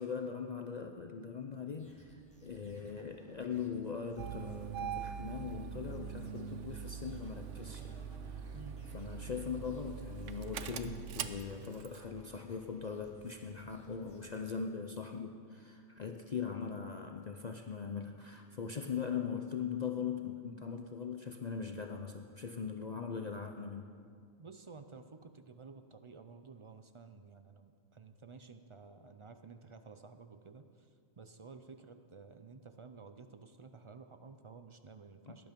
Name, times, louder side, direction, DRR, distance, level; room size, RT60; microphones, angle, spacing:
voice 1, 0.0-8.0 8.3-8.5 8.9-23.9 35.3-35.4, left 6 dB, 45° left, 4 dB, 0.6 m, -40 dB
sound 1, 1.8-14.3, equal, 5° left, 2.6 m, -63 dB
Engine starting, 4.2-12.0, right 8 dB, 75° right, 1.0 m, -43 dB
voice 2, 24.4-30.9 31.2-35.5, right 4 dB, 45° right, 9 dB, 0.4 m, -53 dB
17.5 x 11.0 x 5.2 m, 2.2 s
omnidirectional pair, 1.3 m